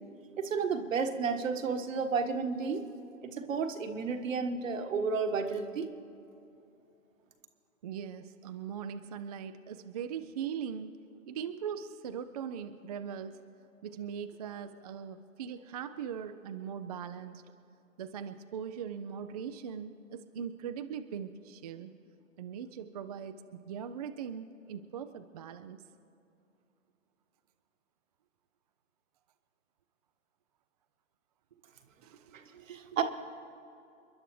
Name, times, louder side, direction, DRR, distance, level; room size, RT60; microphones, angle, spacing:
voice 1, 0.4-2.8 3.2-5.9 32.3-32.4 32.7-33.0, right 5 dB, 65° right, 6 dB, 1.5 m, -32 dB
voice 2, 7.8-10.9 11.3-13.4 13.8-17.4 18.0-21.9 22.4-25.8 32.0-33.0, right 8 dB, 30° right, 9 dB, 0.4 m, -40 dB
30.0 x 11.0 x 3.1 m, 2.7 s
figure-of-eight pair, 120°, 41 cm